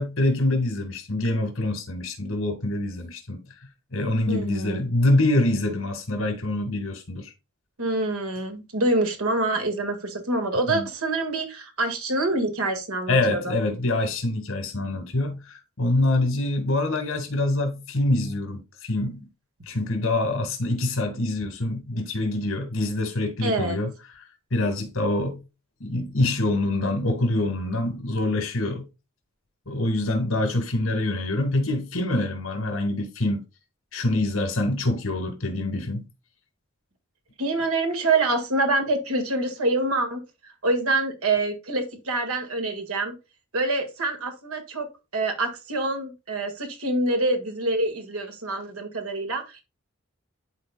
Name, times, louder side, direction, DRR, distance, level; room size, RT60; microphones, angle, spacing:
voice 1, 0.0-3.4 3.9-7.3 10.7-10.8 13.1-19.3 19.7-25.4 25.8-28.9 29.7-33.4 33.9-36.1, left 2 dB, 70° left, 1.9 m, -25 dB
voice 2, 4.3-4.8 7.8-13.5 23.4-23.8 37.4-43.1 43.5-44.9 45.1-49.6, right 2 dB, 90° right, 1.8 m, -26 dB
11.5 x 4.2 x 2.3 m
head